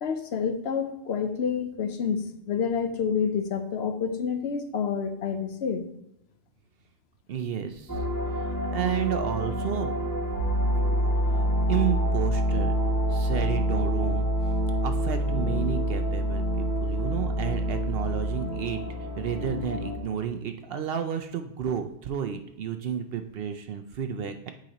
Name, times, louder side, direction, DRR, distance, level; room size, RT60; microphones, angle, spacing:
voice 1, 0.0-5.8, left 6 dB, 65° left, 7 dB, 0.9 m, -28 dB
voice 2, 7.3-8.0 8.3-9.9 11.7-12.8 13.1-14.3 14.8-18.8 19.2-24.5, right 8 dB, 60° right, 7 dB, 0.7 m, -31 dB
sound 1, 7.9-20.0, equal, 15° left, 1.5 m, -27 dB
7.7 x 5.1 x 2.9 m, 0.81 s
omnidirectional pair, 1.2 m